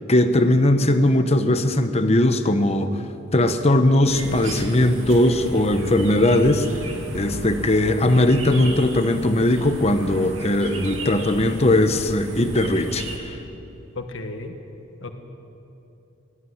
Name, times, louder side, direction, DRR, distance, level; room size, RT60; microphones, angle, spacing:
voice 1, 0.1-3.0 3.3-13.4, left 1 dB, 30° left, 8 dB, 1.0 m, -19 dB
sound 1, 4.0-13.2, right 1 dB, 80° right, 2.7 m, -34 dB
voice 2, 13.9-14.5 15.0-15.1, left 3 dB, 80° left, 5 dB, 1.5 m, -33 dB
19.5 x 13.5 x 9.7 m, 2.8 s
head